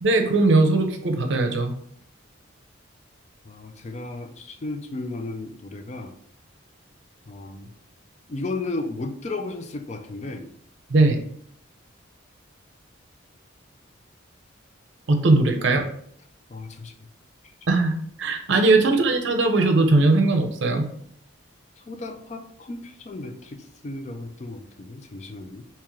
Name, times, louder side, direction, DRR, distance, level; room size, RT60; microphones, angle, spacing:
voice 1, 0.0-1.7 10.9-11.2 15.1-15.9 17.7-17.9 18.2-20.9, right 2 dB, 60° right, 5 dB, 0.6 m, -19 dB
voice 2, 3.4-6.1 7.3-7.7 8.3-10.5 16.5-17.1 21.8-25.6, left 2 dB, 35° left, 6 dB, 0.3 m, -34 dB
3.6 x 2.9 x 3.0 m, 0.66 s
head